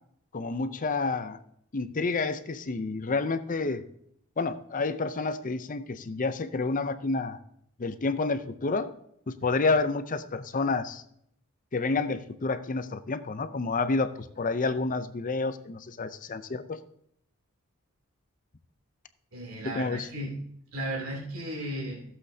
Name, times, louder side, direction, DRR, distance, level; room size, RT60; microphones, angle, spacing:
voice 1, 0.3-1.4 1.7-3.8 4.4-7.4 7.8-8.9 9.3-11.0 11.7-16.8 19.6-20.1, left 3 dB, 40° left, 12 dB, 0.6 m, -29 dB
voice 2, 19.3-20.4 20.7-22.0, right 1 dB, 65° right, -3 dB, 2.9 m, -35 dB
15.5 x 7.8 x 2.8 m, 0.71 s
head